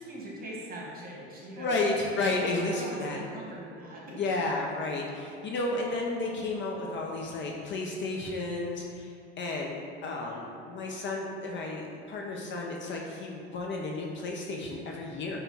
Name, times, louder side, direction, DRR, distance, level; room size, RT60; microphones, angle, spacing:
voice 1, 0.0-2.2 2.6-4.2, right 1 dB, 30° right, -4 dB, 1.3 m, -41 dB
voice 2, 1.6-3.2 4.2-15.4, left 2 dB, 40° left, 0 dB, 0.5 m, -32 dB
5.0 x 2.3 x 4.4 m, 2.5 s
supercardioid pair, 95°, 31 cm